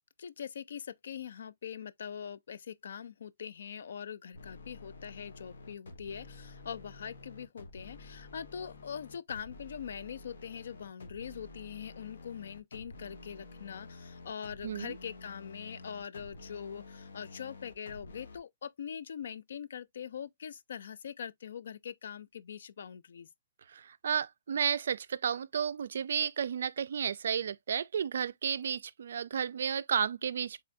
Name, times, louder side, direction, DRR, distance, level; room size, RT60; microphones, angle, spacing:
voice 1, 0.0-23.3, left 8 dB, 65° left, 0.4 m, -43 dB
sound 1, 4.3-18.4, left 2 dB, 85° left, 1.3 m, -50 dB
voice 2, 14.6-15.0 23.7-30.6, right 7 dB, 65° right, 0.3 m, -32 dB
3.6 x 3.2 x 2.5 m
hypercardioid pair, 165°, 0 cm